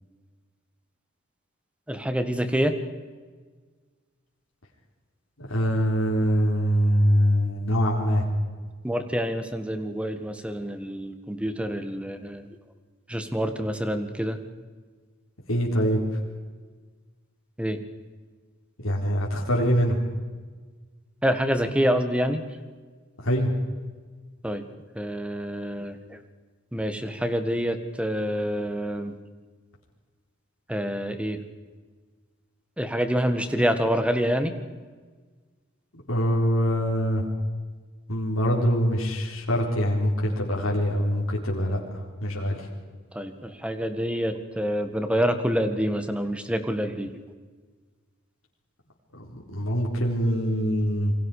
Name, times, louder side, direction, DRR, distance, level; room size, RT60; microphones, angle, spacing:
voice 1, 1.9-2.7 8.8-12.5 13.1-14.4 17.6-17.8 21.2-22.4 24.4-24.6 25.0-26.2 26.7-29.1 30.7-31.4 32.8-34.5 43.1-47.1, equal, 5° right, 8 dB, 1.7 m, -27 dB
voice 2, 5.4-8.3 15.5-16.2 18.8-20.0 23.2-23.5 36.1-37.2 38.1-42.7 49.1-51.1, equal, 85° left, -2 dB, 3.9 m, -24 dB
28.5 x 23.5 x 5.0 m, 1.5 s
head